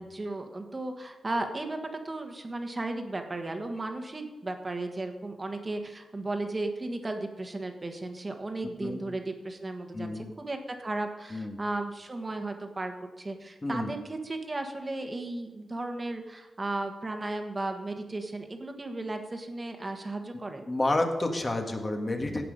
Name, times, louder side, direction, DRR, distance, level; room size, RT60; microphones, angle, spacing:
voice 1, 0.0-1.8 2.0-20.6, right 2 dB, 25° right, 5 dB, 1.5 m, -35 dB
voice 2, 9.9-10.3 11.3-11.6 13.6-13.9 20.7-22.4, left 2 dB, 25° left, 4 dB, 1.6 m, -29 dB
17.0 x 5.8 x 5.4 m, 1.2 s
wide cardioid pair, 115°, 0 cm